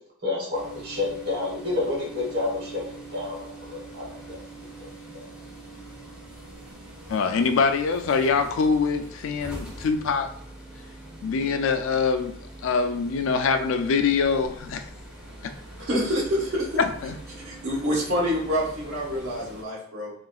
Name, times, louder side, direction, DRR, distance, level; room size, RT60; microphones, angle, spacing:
voice 1, 0.2-4.4 4.8-4.9 5.1-5.2, left 3 dB, 50° right, -5 dB, 1.3 m, -30 dB
sound 1, 0.5-19.6, right 2 dB, 5° right, 0.5 m, -43 dB
voice 2, 7.1-10.3 11.2-12.3 12.6-14.8 17.0-17.1, left 5 dB, 65° left, 7 dB, 0.3 m, -24 dB
voice 3, 15.9-16.7 17.4-20.1, equal, 70° right, -4 dB, 1.1 m, -26 dB
3.7 x 2.4 x 2.3 m, 0.63 s
head